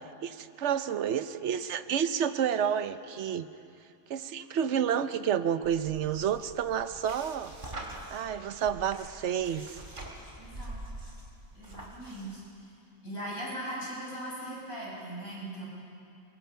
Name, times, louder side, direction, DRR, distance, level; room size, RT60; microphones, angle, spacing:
voice 1, 0.2-3.5 4.1-7.5 8.1-9.8, right 8 dB, 60° right, 12 dB, 0.9 m, -30 dB
sound 1, 5.6-12.4, right 1 dB, 35° right, 2.8 m, -45 dB
voice 2, 10.4-10.8 11.5-12.4 13.0-15.6, right 1 dB, 75° left, -5 dB, 7.2 m, -39 dB
26.0 x 22.0 x 5.7 m, 2.5 s
omnidirectional pair, 1.5 m